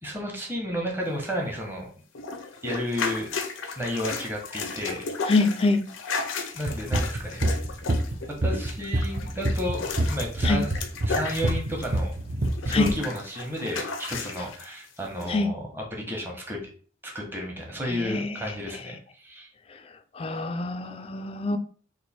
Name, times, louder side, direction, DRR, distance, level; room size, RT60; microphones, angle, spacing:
voice 1, 0.0-1.9 2.6-3.3 3.8-5.1 6.5-7.4 8.3-10.7 11.1-12.1 12.6-16.7 17.0-19.5, equal, 10° right, 0.9 m, -32 dB
sound 1, 2.1-12.1 12.4-14.7 15.2-15.3, left 4 dB, 85° left, 0.5 m, -34 dB
voice 2, 5.3-5.8 10.4-10.6 12.7-12.9 15.3-15.5 17.9-18.4 20.2-21.6, left 3 dB, 30° left, 0.3 m, -25 dB
sound 2, 6.7-12.9, right 1 dB, 35° right, 0.5 m, -26 dB
3.1 x 2.5 x 4.1 m
head